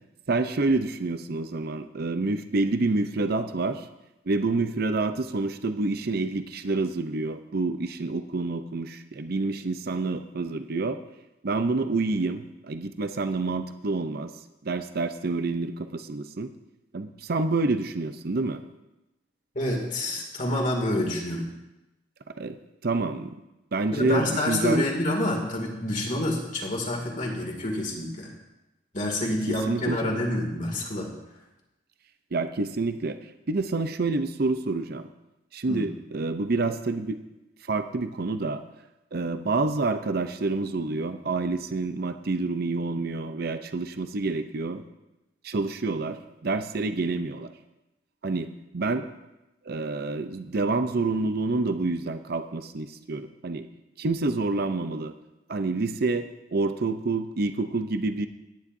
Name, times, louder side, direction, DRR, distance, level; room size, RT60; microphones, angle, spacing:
voice 1, 0.3-3.8 4.3-11.0 11.4-14.3 14.6-16.5 16.9-18.6 22.4-22.6 22.8-23.4 23.7-24.9 29.5-30.2 32.3-33.2 33.5-35.0 35.5-37.2 37.7-38.6 39.1-44.8 45.4-47.5 48.2-48.5 48.7-49.1 49.7-53.7 54.0-55.1 55.5-58.3, right 3 dB, 55° right, 9 dB, 0.6 m, -28 dB
voice 2, 19.5-21.5 23.9-28.3 28.9-31.1 35.7-35.9, left 1 dB, 40° left, 0 dB, 2.3 m, -28 dB
18.0 x 10.0 x 2.7 m, 0.97 s
head